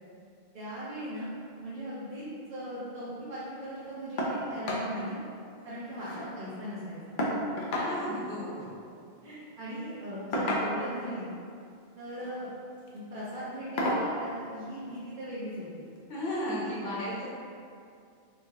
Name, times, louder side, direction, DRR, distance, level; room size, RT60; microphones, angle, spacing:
voice 1, 0.5-1.3 1.6-2.2 2.5-5.2 5.6-7.1 9.2-11.3 12.0-12.5 12.9-15.8, equal, 50° right, -11 dB, 0.8 m, -38 dB
sound 1, 4.2-4.4 4.7-4.9 5.3-5.4 5.6-6.3 7.2-7.9 9.2-9.4 10.3-11.0 12.0-12.3 12.8-13.0 13.8-14.1 15.4-15.5 16.0-16.1, left 1 dB, 60° left, 0.7 m, -31 dB
voice 2, 7.6-8.7 16.1-17.3, equal, 80° left, -9 dB, 1.5 m, -34 dB
3.7 x 3.4 x 2.6 m, 2.4 s
omnidirectional pair, 1.1 m